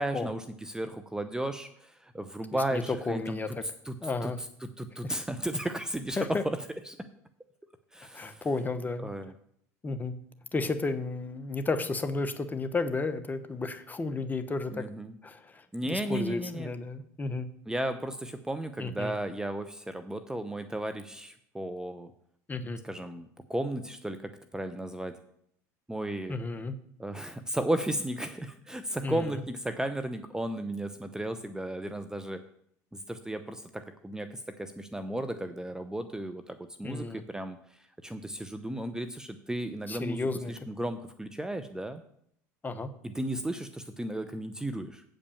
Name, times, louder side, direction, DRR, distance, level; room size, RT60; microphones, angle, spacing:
voice 1, 0.0-3.4 3.8-4.0 4.2-4.3 4.6-6.2 6.4-6.6 6.9-7.0 7.9-8.5 9.0-9.3 14.7-15.1 15.7-16.7 17.7-22.1 22.8-25.2 25.9-26.3 27.0-32.4 32.9-42.0 43.0-45.0, right 1 dB, 5° right, 9 dB, 0.7 m, -34 dB
voice 2, 2.7-3.6 4.0-4.4 5.0-5.2 6.2-6.4 8.1-9.1 9.8-10.2 10.5-14.8 15.2-17.5 18.8-19.1 22.5-22.8 26.3-26.7 29.0-29.4 36.8-37.2 39.9-40.5 42.6-42.9, left 3 dB, 20° left, 10 dB, 1.0 m, -32 dB
8.3 x 5.4 x 7.1 m, 0.69 s
hypercardioid pair, 85°, 9 cm